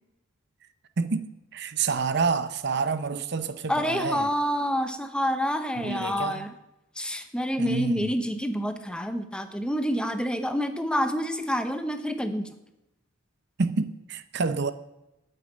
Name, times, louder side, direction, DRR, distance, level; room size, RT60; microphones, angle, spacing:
voice 1, 1.0-4.3 5.8-6.5 7.6-8.1 13.6-14.7, right 4 dB, 55° right, 0.7 m, -28 dB
voice 2, 3.7-6.5 7.0-12.5, equal, 5° left, 0.8 m, -28 dB
9.0 x 8.5 x 9.3 m
head